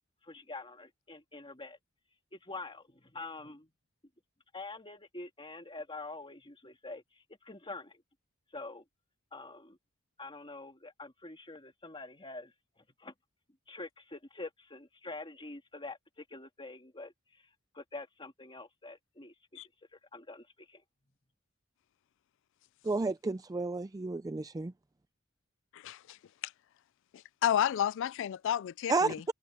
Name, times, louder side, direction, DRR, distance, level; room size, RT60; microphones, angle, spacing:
voice 1, 0.2-1.8 2.3-3.7 4.5-8.0 8.5-8.8 9.3-9.8 10.2-13.1 13.7-19.3 19.6-20.8, left 3 dB, 25° left, 2.5 m, -46 dB
voice 2, 22.8-24.7 28.9-29.1, right 3 dB, 15° right, 0.4 m, -31 dB
voice 3, 25.7-26.2 26.4-26.5 27.1-29.2, left 9 dB, 65° left, 0.3 m, -31 dB
head